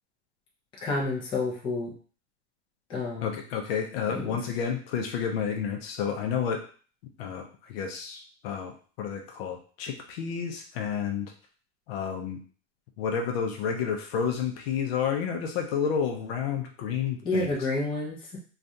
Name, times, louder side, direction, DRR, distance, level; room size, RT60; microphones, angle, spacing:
voice 1, 0.8-1.9 2.9-3.4 4.1-4.4 17.2-18.4, left 2 dB, 15° left, -3 dB, 0.5 m, -29 dB
voice 2, 3.2-6.6 7.2-11.3 11.9-12.4 13.0-17.6, left 7 dB, 55° left, 3 dB, 0.7 m, -30 dB
3.1 x 2.4 x 2.6 m, 0.40 s
supercardioid pair, 160°, 35 cm